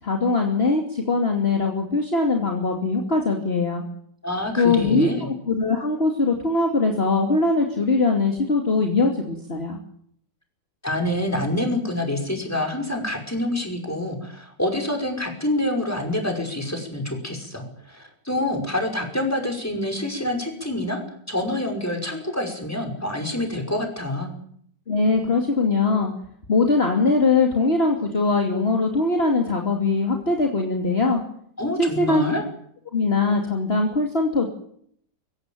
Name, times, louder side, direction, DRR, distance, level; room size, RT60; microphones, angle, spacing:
voice 1, 0.0-3.8 4.6-9.8 24.9-26.1 26.5-31.2 31.8-32.2 32.9-34.5, left 3 dB, 35° left, 2 dB, 2.9 m, -21 dB
voice 2, 4.2-5.3 10.8-21.0 21.3-24.3 31.6-32.4, left 1 dB, 10° left, 3 dB, 5.6 m, -27 dB
24.0 x 16.5 x 9.2 m, 0.66 s
omnidirectional pair, 1.9 m